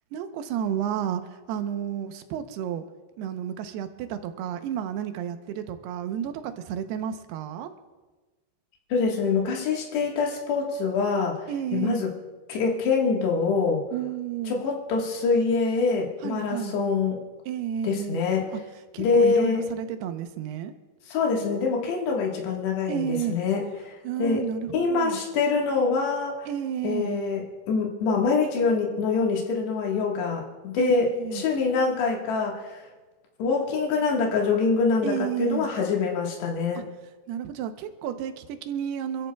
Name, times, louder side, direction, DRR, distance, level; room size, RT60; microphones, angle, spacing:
voice 1, 0.1-2.8 3.2-7.7 11.5-12.1 13.9-14.6 16.2-16.8 17.5-18.6 18.9-20.7 22.9-23.4 24.0-25.2 26.5-27.2 30.8-31.5 35.0-35.7 36.8-36.9 37.3-39.3, right 9 dB, 80° right, 8 dB, 2.8 m, -31 dB
voice 2, 8.9-11.4 11.7-12.1 12.5-13.8 14.5-17.3 17.8-18.5 19.0-19.6 21.1-23.9 24.2-24.4 24.7-26.5 26.8-31.1 31.4-32.8 33.4-36.8, left 4 dB, 80° left, -1 dB, 3.8 m, -25 dB
27.5 x 14.0 x 2.3 m, 1.3 s
omnidirectional pair, 4.8 m